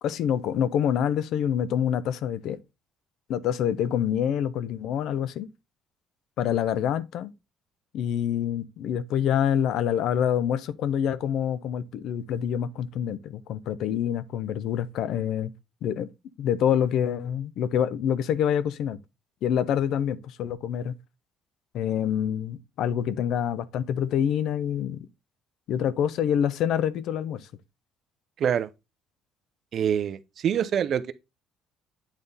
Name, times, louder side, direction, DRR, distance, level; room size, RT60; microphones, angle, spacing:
voice 1, 0.0-2.6 3.3-5.5 6.4-7.3 7.9-15.5 15.8-16.1 16.4-19.0 19.4-20.9 21.7-25.1 25.7-27.5, left 9 dB, 65° left, 0.5 m, -26 dB
voice 2, 28.4-28.7 29.7-31.1, right 8 dB, 45° right, 0.5 m, -25 dB
8.9 x 3.6 x 3.9 m
cardioid pair, 145°, 0 cm